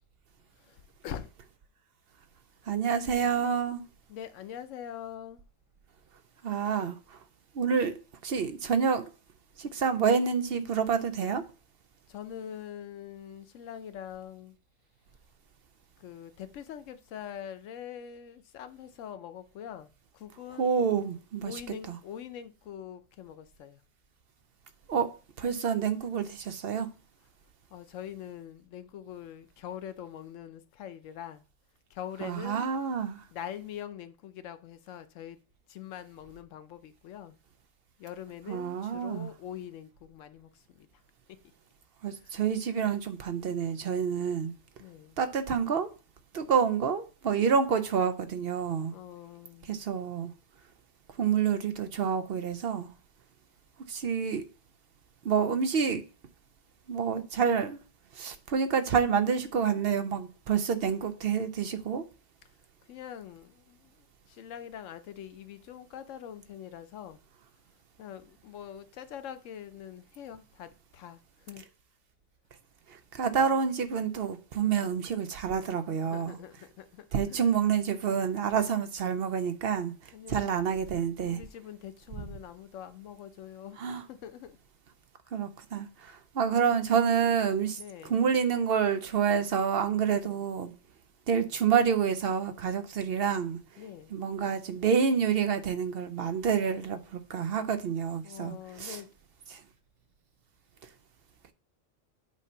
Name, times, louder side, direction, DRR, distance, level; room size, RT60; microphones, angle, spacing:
voice 1, 0.6-1.3 4.1-5.4 12.1-14.6 16.0-20.8 21.4-23.8 27.7-31.4 31.9-32.7 33.3-35.4 35.7-37.4 38.0-40.9 44.8-45.2 48.9-49.7 62.9-63.9 64.3-67.2 68.0-71.6 76.1-77.6 80.1-80.5 81.2-83.8 84.1-84.6 87.8-88.3 89.9-90.4 93.8-94.2 98.2-99.1, left 9 dB, 90° left, 1.0 m, -44 dB
voice 2, 2.7-3.8 6.4-7.2 7.5-9.0 9.6-11.4 20.6-21.6 21.9-22.0 24.9-25.1 25.4-26.9 32.2-33.2 38.5-39.3 42.0-44.5 45.2-45.9 46.3-48.9 49.6-50.3 51.2-52.9 53.9-54.4 55.2-56.0 56.9-57.8 58.1-62.0 72.9-76.4 77.1-81.4 83.8-84.0 85.3-87.8 88.0-90.7 91.3-93.6 94.1-99.0 99.5-99.6, right 7 dB, 60° right, 0.8 m, -28 dB
8.2 x 2.8 x 5.4 m
omnidirectional pair, 1.3 m